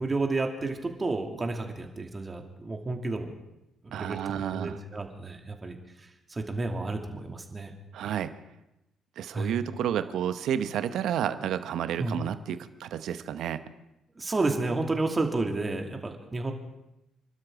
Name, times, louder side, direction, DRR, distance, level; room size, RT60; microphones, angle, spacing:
voice 1, 0.0-3.3 3.8-4.2 4.5-5.8 6.3-7.7 9.3-9.6 12.0-12.2 14.2-16.5, right 3 dB, 25° right, 3 dB, 2.5 m, -31 dB
voice 2, 3.9-4.8 7.9-8.3 9.2-13.6, right 9 dB, 65° right, 12 dB, 0.9 m, -31 dB
28.0 x 12.5 x 3.7 m, 0.91 s
hypercardioid pair, 50°, 0 cm